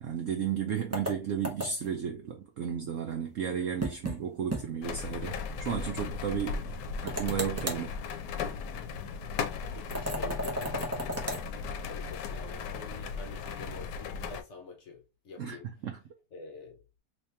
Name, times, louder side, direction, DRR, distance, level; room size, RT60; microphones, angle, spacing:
voice 1, 0.0-6.8 7.0-8.0 15.4-15.6 15.8-16.0, right 8 dB, 65° right, 0.8 m, -33 dB
sound 1, 0.9-2.0 3.8-4.2 4.5-4.6 5.0-5.1 7.1-7.9 9.9-11.4, equal, 20° right, 0.4 m, -34 dB
sound 2, 4.8-14.4, left 5 dB, 85° left, 1.2 m, -37 dB
voice 2, 9.7-15.7 16.3-16.8, left 4 dB, 55° left, 1.0 m, -47 dB
3.2 x 2.8 x 3.3 m
omnidirectional pair, 1.8 m